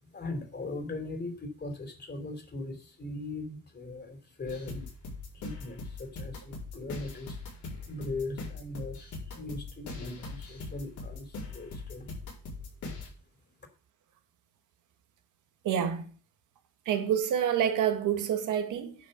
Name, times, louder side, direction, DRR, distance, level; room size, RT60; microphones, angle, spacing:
voice 1, 0.0-4.9 5.3-12.1 12.9-13.1, left 2 dB, 35° left, 3.1 m, -40 dB
sound 1, 4.5-13.1, left 3 dB, 75° left, 5.0 m, -41 dB
voice 2, 15.6-16.0 16.9-18.9, right 9 dB, 85° right, 1.8 m, -27 dB
10.0 x 5.6 x 6.5 m
cardioid pair, 90°, 30 cm